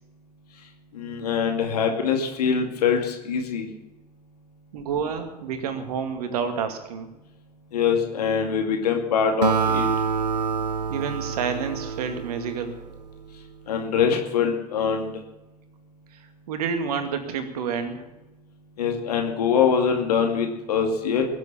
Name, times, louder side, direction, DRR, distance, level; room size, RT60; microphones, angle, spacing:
voice 1, 0.9-3.7 7.7-9.9 13.7-15.1 18.8-21.3, left 6 dB, 70° left, 3 dB, 2.5 m, -23 dB
voice 2, 4.7-7.1 10.9-12.8 16.5-18.0, right 6 dB, 70° right, 8 dB, 2.3 m, -29 dB
Acoustic guitar, 9.4-13.0, right 6 dB, 85° right, 0.6 m, -26 dB
22.0 x 7.8 x 7.3 m, 0.97 s
figure-of-eight pair, 70°, 20 cm